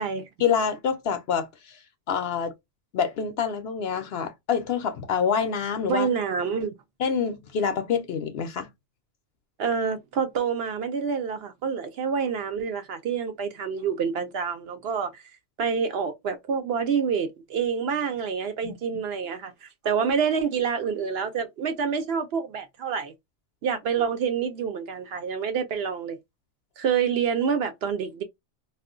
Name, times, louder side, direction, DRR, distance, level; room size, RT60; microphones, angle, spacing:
voice 1, 0.4-1.5 2.1-2.5 2.9-6.1 7.0-8.7 18.6-18.7, left 7 dB, 65° left, 0.8 m, -26 dB
voice 2, 5.9-6.7 9.6-15.2 15.6-23.1 23.6-26.2 26.8-28.2, right 6 dB, 65° right, 0.7 m, -27 dB
2.4 x 2.2 x 3.6 m
omnidirectional pair, 1.2 m